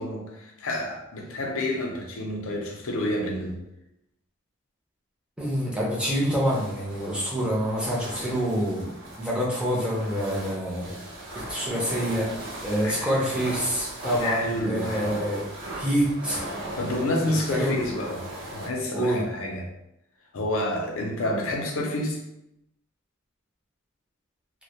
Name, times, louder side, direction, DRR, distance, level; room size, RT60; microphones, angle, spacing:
voice 1, 0.0-3.6 12.8-13.1 14.2-15.2 16.8-19.7 20.3-22.2, left 1 dB, 70° left, 0 dB, 0.5 m, -29 dB
voice 2, 5.4-8.9 9.2-10.9 11.5-12.3 12.6-15.4 15.8-16.4 17.5-17.7 18.9-19.2, equal, 5° right, -5 dB, 0.5 m, -26 dB
sound 1, 6.4-18.7, right 1 dB, 65° right, 0.6 m, -38 dB
2.1 x 2.1 x 2.8 m, 0.83 s
head